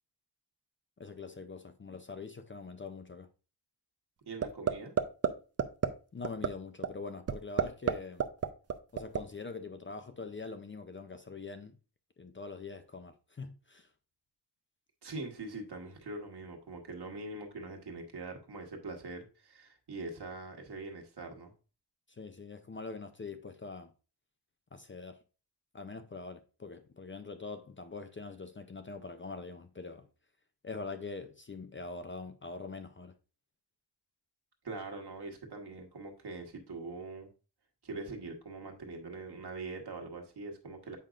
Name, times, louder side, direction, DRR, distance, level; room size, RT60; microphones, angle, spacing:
voice 1, 1.0-3.3 6.1-8.3 8.9-11.7 12.2-13.9 22.1-23.9 24.7-25.2 25.7-30.1 30.6-33.1, left 4 dB, 30° left, 0.5 m, -43 dB
voice 2, 4.3-4.9 15.0-21.5 34.6-37.3 37.8-41.0, right 3 dB, 65° right, 1.4 m, -43 dB
sound 1, 4.4-4.7 5.0-5.3 5.6-5.9 6.2-6.5 6.8-6.9 7.3-7.9 8.2-9.2, right 7 dB, 40° right, 0.5 m, -27 dB
7.6 x 5.1 x 2.4 m
wide cardioid pair, 155°, 42 cm